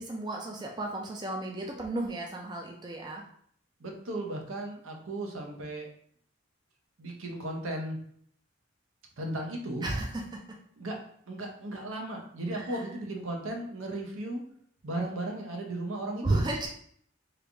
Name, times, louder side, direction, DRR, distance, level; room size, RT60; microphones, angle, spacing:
voice 1, 0.0-3.2 9.8-10.2 12.5-12.6 16.2-16.7, right 2 dB, 20° right, 0 dB, 0.4 m, -32 dB
voice 2, 3.8-5.9 7.0-8.0 9.2-9.8 10.8-11.0 11.3-14.4 14.8-16.4, right 1 dB, 80° right, 1 dB, 0.7 m, -35 dB
3.3 x 2.5 x 3.3 m, 0.63 s
head